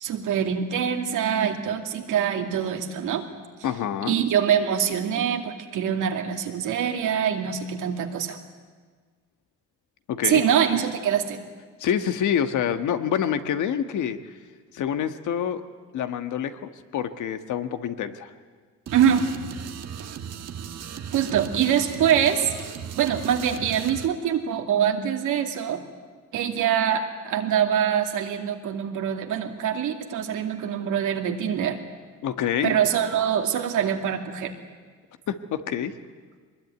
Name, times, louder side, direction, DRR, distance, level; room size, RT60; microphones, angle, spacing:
voice 1, 0.0-3.3 4.1-8.4 10.2-11.4 18.9-19.3 21.1-22.5 23.0-25.8 26.3-31.8 32.6-34.5, right 8 dB, 85° right, 4 dB, 2.4 m, -24 dB
voice 2, 3.6-4.2 10.1-10.4 11.8-14.3 14.7-15.6 15.9-18.3 32.2-32.7 35.3-35.9, left 9 dB, 75° left, 9 dB, 1.5 m, -27 dB
sound 1, 18.9-24.1, right 8 dB, 60° right, 1.3 m, -37 dB
22.5 x 20.5 x 9.4 m, 1.5 s
cardioid pair, 90°, 30 cm